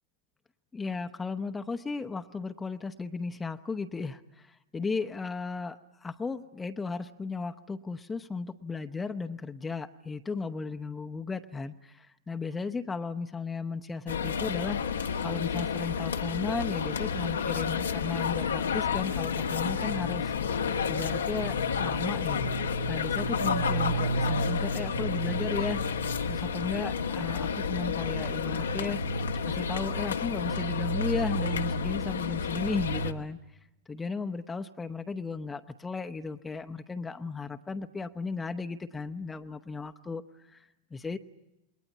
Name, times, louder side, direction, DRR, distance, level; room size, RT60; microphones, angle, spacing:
voice 1, 0.7-14.8 15.2-20.3 20.9-22.5 22.9-25.8 26.3-29.0 29.4-33.4 33.9-40.2 40.5-41.2, left 4 dB, 15° left, 7 dB, 0.9 m, -35 dB
sound 1, 14.1-33.1, left 4 dB, 70° left, 1.4 m, -30 dB
28.5 x 21.5 x 8.5 m, 0.90 s
figure-of-eight pair, 90°, 0 cm